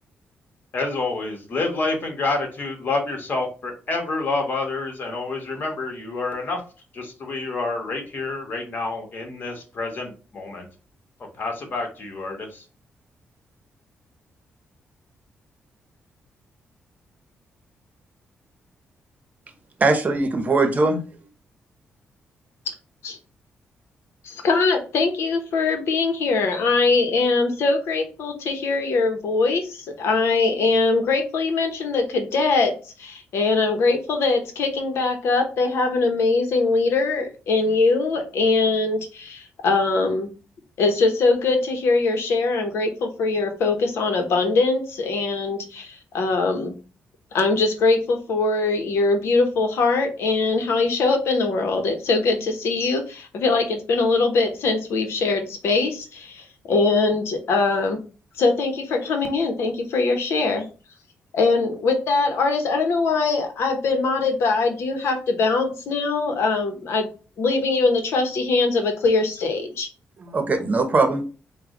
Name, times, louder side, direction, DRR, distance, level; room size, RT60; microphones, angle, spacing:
voice 1, 0.7-6.6 6.9-10.7 11.4-12.6, left 3 dB, 50° left, 3 dB, 1.3 m, -28 dB
voice 2, 19.8-21.0 70.2-71.2, right 3 dB, 40° right, 7 dB, 0.8 m, -20 dB
voice 3, 24.2-32.7 33.0-40.3 40.8-46.7 47.3-58.0 58.4-60.7 61.3-67.1 67.4-69.9, left 3 dB, 80° left, 5 dB, 0.8 m, -22 dB
4.7 x 2.2 x 3.7 m, 0.35 s
cardioid pair, 100°, 4 cm